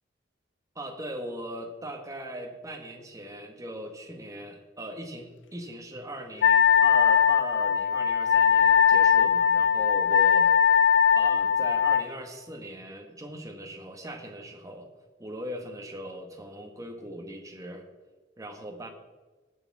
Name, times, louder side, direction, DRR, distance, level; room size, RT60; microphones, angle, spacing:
voice 1, 0.7-10.5 11.1-14.9 15.2-17.9 18.4-18.9, right 1 dB, 20° right, 3 dB, 1.6 m, -39 dB
Wind instrument woodwind instrument, 6.4-12.1, left 7 dB, 70° left, 0.4 m, -20 dB
19.0 x 6.9 x 4.8 m, 1.3 s
head